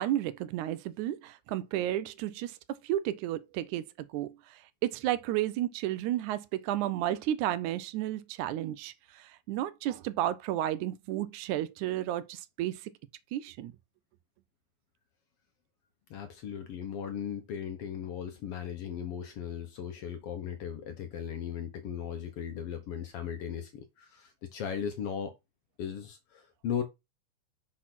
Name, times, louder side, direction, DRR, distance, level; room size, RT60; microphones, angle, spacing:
voice 1, 0.0-3.9 4.1-12.9 13.3-13.7, right 13 dB, 80° right, 2.0 m, -32 dB
voice 2, 16.1-25.3 25.8-26.8, left 8 dB, 65° left, 1.5 m, -37 dB
6.5 x 4.2 x 5.9 m
omnidirectional pair, 3.5 m